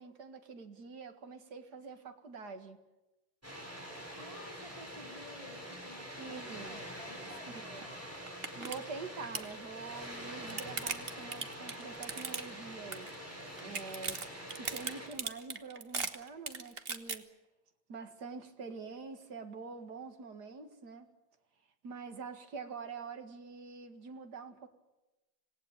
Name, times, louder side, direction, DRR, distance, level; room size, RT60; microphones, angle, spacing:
voice 1, 0.0-2.8 6.2-6.8 7.5-7.8 8.6-13.1 13.6-14.2 14.5-17.3 17.9-21.1 21.8-24.7, right 4 dB, 50° right, 2.4 m, -46 dB
Water, 3.4-15.1, equal, 5° right, 6.4 m, -45 dB
voice 2, 4.2-8.3, left 1 dB, 15° left, 4.0 m, -53 dB
sound 1, 7.8-7.9 8.3-8.8 9.0-9.5 10.1-12.7 12.9-13.3 13.6-17.2, right 4 dB, 30° right, 1.3 m, -38 dB
26.5 x 18.0 x 8.9 m
omnidirectional pair, 2.3 m